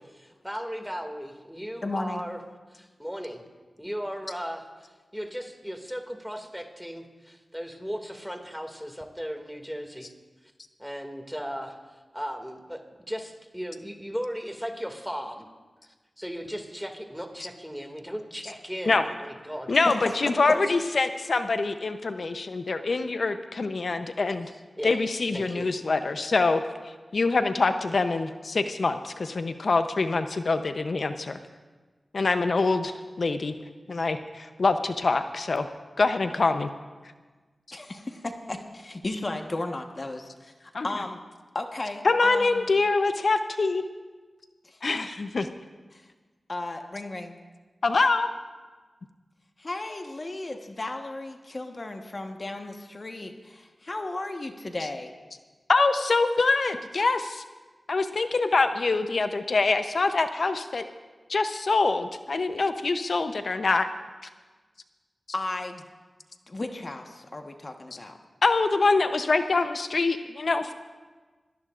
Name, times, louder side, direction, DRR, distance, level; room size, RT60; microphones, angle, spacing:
voice 1, 0.0-2.4 2.7-3.4 3.8-4.7 5.1-10.1 10.8-11.8 12.1-15.5 15.8-19.7 24.8-25.0 25.3-25.7, equal, ahead, 3 dB, 2.3 m, -36 dB
voice 2, 1.8-2.2 37.7-41.2 41.5-42.7 44.6-44.8 45.9-46.1 46.5-47.4 49.6-55.1 65.3-65.8 66.5-68.2, left 2 dB, 45° left, 4 dB, 1.3 m, -35 dB
voice 3, 19.7-24.5 24.8-26.6 27.1-31.4 32.1-33.5 33.9-35.7 36.0-36.7 40.7-40.9 42.0-43.8 44.8-45.5 47.8-48.3 55.7-57.4 57.9-60.8 61.3-63.9 68.4-70.7, left 3 dB, 70° left, 8 dB, 0.8 m, -25 dB
25.0 x 18.0 x 2.5 m, 1.3 s
cardioid pair, 45°, 0 cm